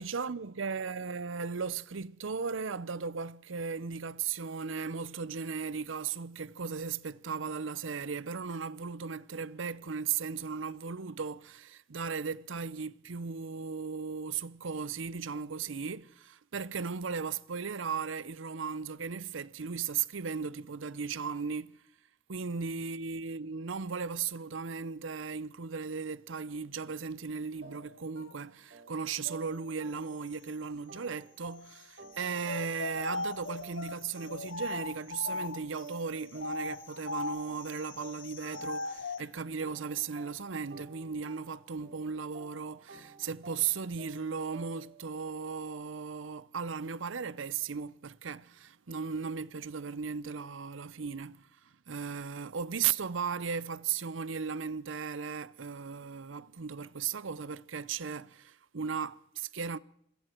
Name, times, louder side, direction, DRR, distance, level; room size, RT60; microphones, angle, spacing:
voice 1, 0.0-21.8 22.3-51.5 51.9-59.8, right 6 dB, 85° right, 0.7 m, -36 dB
sound 1, 27.6-30.5 30.9-39.2 39.6-45.1, right 3 dB, 55° right, 4.9 m, -53 dB
sound 2, 32.4-35.8 36.3-39.3, left 3 dB, 80° left, 1.2 m, -38 dB
27.5 x 22.5 x 4.5 m
head